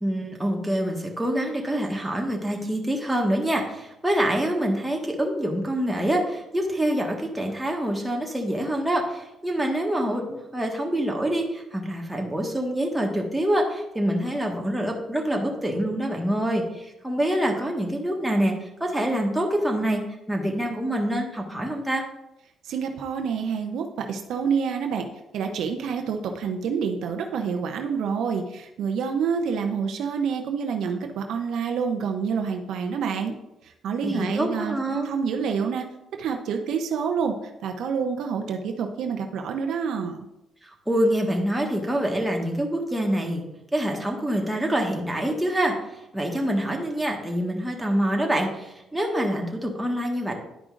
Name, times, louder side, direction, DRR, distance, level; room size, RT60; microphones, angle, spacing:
voice 1, 0.0-20.0 20.3-22.0 34.0-35.1 40.6-43.4 43.7-45.7 46.1-50.3, right 1 dB, 5° right, 0 dB, 1.5 m, -26 dB
voice 2, 22.6-25.1 25.3-33.3 33.6-35.8 36.2-37.3 37.6-40.2, right 6 dB, 75° right, 4 dB, 0.7 m, -27 dB
11.0 x 4.9 x 2.5 m, 0.89 s
cardioid pair, 90°, 0 cm